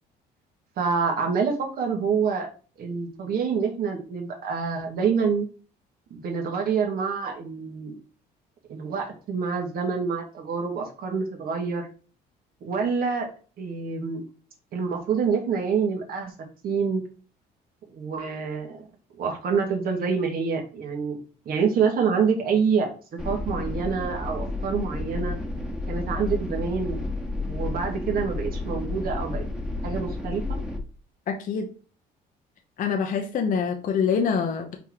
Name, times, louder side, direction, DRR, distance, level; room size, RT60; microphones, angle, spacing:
voice 1, 0.8-2.5 2.8-5.5 6.1-7.9 8.7-11.9 12.6-13.3 13.6-14.2 14.7-16.3 16.6-17.0 17.9-18.9 19.2-21.2 21.5-25.4 25.9-27.0 27.4-29.4 29.8-30.6, right 5 dB, 60° right, 2 dB, 2.3 m, -26 dB
sound 1, 23.2-30.8, left 2 dB, 5° right, 1.6 m, -31 dB
voice 2, 31.3-31.7 32.8-34.7, left 6 dB, 55° left, 3 dB, 1.1 m, -25 dB
5.3 x 4.5 x 4.9 m, 0.38 s
cardioid pair, 110°, 17 cm